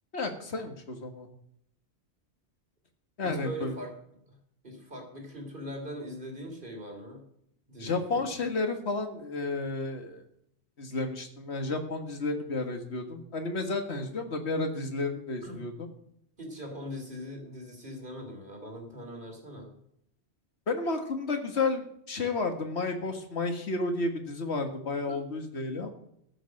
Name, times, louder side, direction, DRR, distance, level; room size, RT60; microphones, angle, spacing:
voice 1, 0.1-1.3 3.2-3.8 7.8-10.2 10.8-15.9 20.7-25.9, left 3 dB, 70° left, 5 dB, 1.9 m, -32 dB
voice 2, 3.2-3.9 4.3-4.4 4.6-7.2 7.7-8.3 15.4-15.7 16.4-19.7 25.1-25.2, equal, 45° right, 2 dB, 3.4 m, -41 dB
14.0 x 6.9 x 6.4 m, 0.74 s
omnidirectional pair, 1.2 m